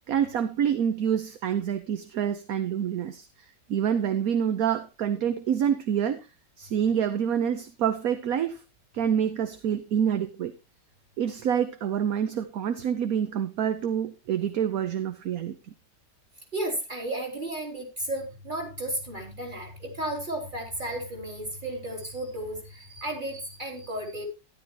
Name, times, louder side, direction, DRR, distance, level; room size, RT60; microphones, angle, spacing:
voice 1, 0.1-3.3 3.7-6.2 6.6-8.6 8.9-10.5 11.2-15.5, right 8 dB, 65° right, 1.2 m, -27 dB
voice 2, 16.5-24.3, right 1 dB, 25° right, 3.4 m, -33 dB
13.0 x 11.0 x 2.9 m
omnidirectional pair, 1.8 m